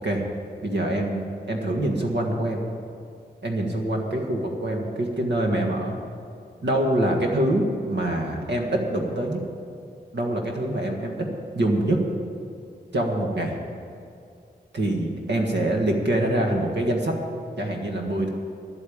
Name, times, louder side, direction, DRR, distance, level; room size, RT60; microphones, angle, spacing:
voice 1, 0.6-2.6 3.4-6.0 6.6-9.4 10.1-11.3 11.5-12.0 12.9-13.5 14.7-17.1 17.6-18.3, right 1 dB, 90° right, 1 dB, 1.7 m, -25 dB
11.0 x 8.5 x 8.6 m, 2.5 s
wide cardioid pair, 110°, 17 cm